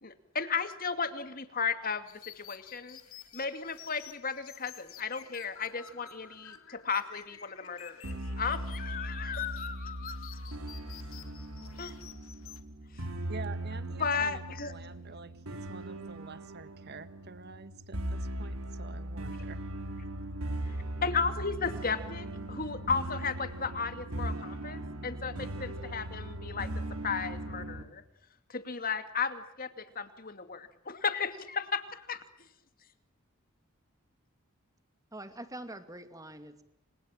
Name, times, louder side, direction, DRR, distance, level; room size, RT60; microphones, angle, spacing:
voice 1, 0.0-2.1 2.3-3.0 3.3-10.3 11.8-12.0 14.0-14.7 20.7-20.8 21.0-26.7 27.0-28.0 28.5-32.2, left 5 dB, 40° left, 9 dB, 2.5 m, -34 dB
sound 1, 2.1-12.6, left 9 dB, 75° left, 2.9 m, -51 dB
sound 2, 8.0-27.8, right 1 dB, 85° right, 3.4 m, -39 dB
voice 2, 13.3-19.6, right 3 dB, 50° right, 12 dB, 1.5 m, -47 dB
voice 3, 35.1-36.6, right 1 dB, 15° right, 9 dB, 2.5 m, -44 dB
29.5 x 27.0 x 7.5 m, 0.76 s
head